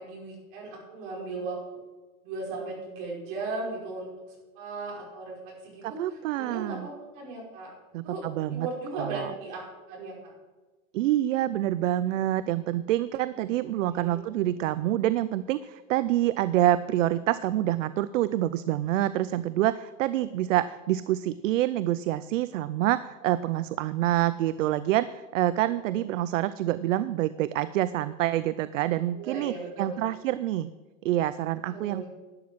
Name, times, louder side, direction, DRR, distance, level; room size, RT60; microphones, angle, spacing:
voice 1, 0.0-1.8 2.2-4.1 4.6-7.7 8.0-9.6 9.9-10.3 13.3-13.6 13.9-14.2 29.1-30.2 31.7-32.1, right 3 dB, 40° right, -4 dB, 5.3 m, -37 dB
voice 2, 5.8-6.9 7.9-8.7 9.0-9.3 10.9-30.7 31.0-32.1, right 14 dB, 65° right, 15 dB, 0.5 m, -27 dB
11.5 x 9.4 x 6.2 m, 1.2 s
supercardioid pair, 180°, 41 cm